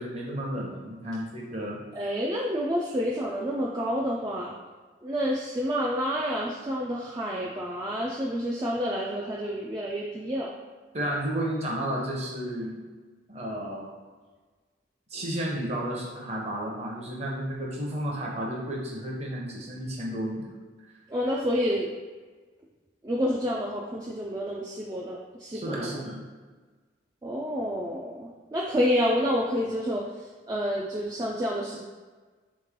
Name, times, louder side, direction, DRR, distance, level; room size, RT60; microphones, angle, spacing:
voice 1, 0.0-1.8 10.9-12.8 13.3-13.9 15.1-20.5 25.5-26.2, right 1 dB, 35° right, -2 dB, 0.8 m, -32 dB
voice 2, 1.9-4.6 5.0-10.5 21.1-21.9 23.0-26.0 27.2-30.0 30.5-31.8, equal, 20° right, -4 dB, 0.4 m, -29 dB
3.7 x 3.1 x 3.7 m, 1.4 s
head